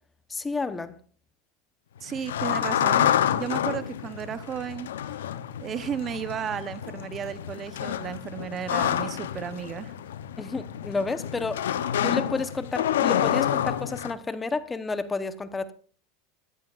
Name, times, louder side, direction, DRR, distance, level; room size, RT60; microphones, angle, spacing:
voice 1, 0.3-0.9 10.4-11.7 12.0-15.7, left 3 dB, 15° left, 0.9 m, -30 dB
sound 1, 2.0-14.1, left 10 dB, 90° left, 0.7 m, -28 dB
voice 2, 2.0-4.9 5.6-9.9, right 8 dB, 35° right, 0.8 m, -34 dB
15.0 x 13.0 x 2.5 m
hypercardioid pair, 110°, 0 cm